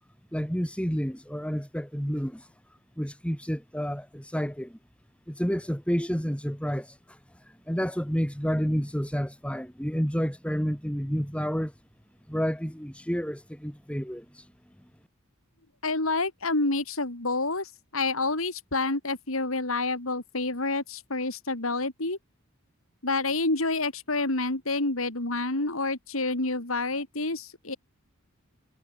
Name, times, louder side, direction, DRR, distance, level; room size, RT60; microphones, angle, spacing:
voice 1, 0.3-2.5 3.0-4.8 5.3-11.7 12.3-14.5, equal, 5° left, 5.7 m, -30 dB
voice 2, 15.8-22.2 23.0-27.8, left 2 dB, 75° left, 3.8 m, -28 dB
head